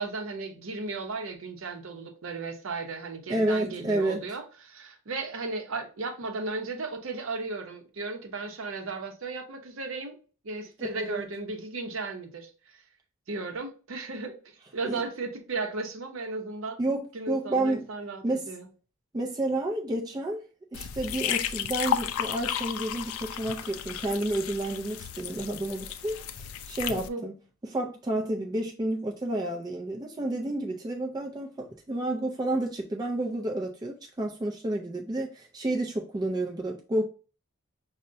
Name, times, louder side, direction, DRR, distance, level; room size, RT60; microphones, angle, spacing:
voice 1, 0.0-10.2 10.4-12.5 13.3-14.4 14.7-16.8 17.1-18.7 26.9-27.2, right 3 dB, 65° right, 0.6 m, -35 dB
voice 2, 3.3-4.2 10.8-11.3 14.8-15.0 16.8-17.9 18.2-18.5 19.1-20.4 20.7-26.2 26.7-27.3 27.6-37.0, right 1 dB, 20° right, 0.3 m, -30 dB
sound 1, 20.7-27.1, left 9 dB, 75° left, 0.3 m, -33 dB
5.4 x 2.1 x 2.5 m
head